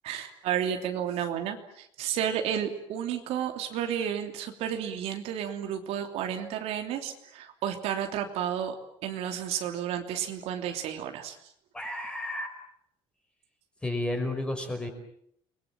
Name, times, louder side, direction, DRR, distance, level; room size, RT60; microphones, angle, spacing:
voice 1, 0.0-8.7 9.0-11.4, right 9 dB, 70° right, 5 dB, 3.0 m, -32 dB
voice 2, 11.7-12.5 13.8-14.9, left 1 dB, 10° left, 4 dB, 5.4 m, -32 dB
30.0 x 21.5 x 7.6 m, 0.71 s
cardioid pair, 150°, 11 cm